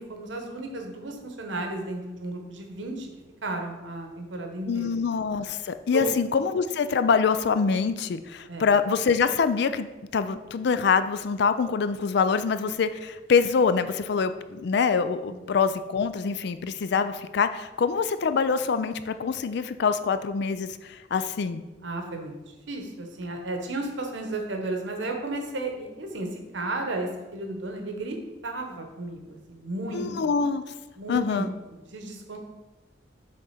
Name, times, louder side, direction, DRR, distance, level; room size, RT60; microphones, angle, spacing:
voice 1, 0.0-3.1 3.4-5.0 5.9-6.1 8.5-8.7 15.3-15.4 21.8-22.3 22.7-28.2 28.4-30.1 31.0-32.4, right 2 dB, 75° right, 3 dB, 1.1 m, -33 dB
voice 2, 4.7-9.9 10.1-21.6 29.9-30.6 31.1-31.5, left 5 dB, 60° left, 11 dB, 0.4 m, -25 dB
6.5 x 3.6 x 5.7 m, 1.1 s
head